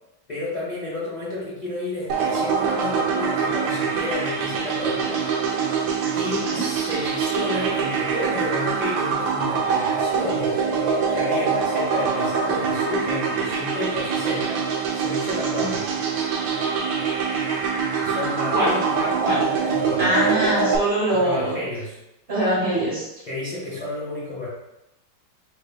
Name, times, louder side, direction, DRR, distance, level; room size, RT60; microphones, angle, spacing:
voice 1, 0.3-5.3 5.6-10.6 11.1-15.8 18.0-20.1 21.1-22.0 22.3-22.4 23.2-24.5, left 2 dB, 30° left, -9 dB, 0.8 m, -31 dB
sound 1, 2.1-20.8, right 6 dB, 85° right, 1.4 m, -24 dB
voice 2, 20.0-21.6 22.3-23.0, right 1 dB, 35° right, -8 dB, 1.7 m, -23 dB
5.0 x 3.3 x 2.2 m, 0.90 s
omnidirectional pair, 2.0 m